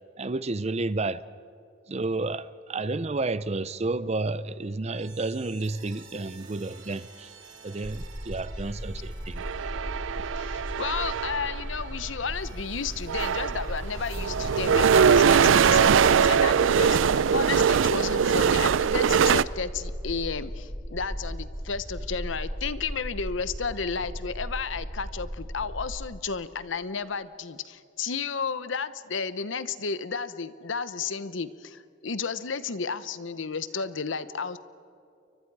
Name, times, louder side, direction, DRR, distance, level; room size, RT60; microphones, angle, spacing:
voice 1, 0.2-1.2 1.9-7.3 7.6-9.4, right 3 dB, 35° right, 0.6 m, -31 dB
sound 1, 4.9-18.8, right 4 dB, 70° right, 3.0 m, -51 dB
sound 2, 7.8-26.0, equal, 5° right, 3.6 m, -37 dB
sound 3, 9.4-11.6 12.5-12.6 13.0-19.4, right 7 dB, 85° right, 0.4 m, -22 dB
voice 2, 10.4-34.6, left 5 dB, 80° left, 0.9 m, -32 dB
29.5 x 23.5 x 4.8 m
head